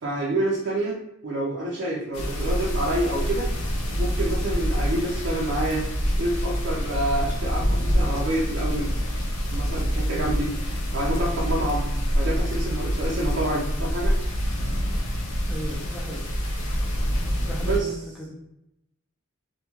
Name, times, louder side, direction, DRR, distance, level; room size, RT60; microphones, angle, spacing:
voice 1, 0.0-3.5 4.0-5.9 6.2-8.9 9.5-10.5 10.9-14.2 17.6-17.9, right 1 dB, 60° right, -3 dB, 0.4 m, -28 dB
sound 1, 2.1-17.8, equal, 85° left, 0.5 m, -26 dB
voice 2, 15.5-16.3 16.7-16.9 17.4-18.3, equal, ahead, -4 dB, 0.5 m, -37 dB
2.3 x 2.2 x 3.0 m, 0.86 s
head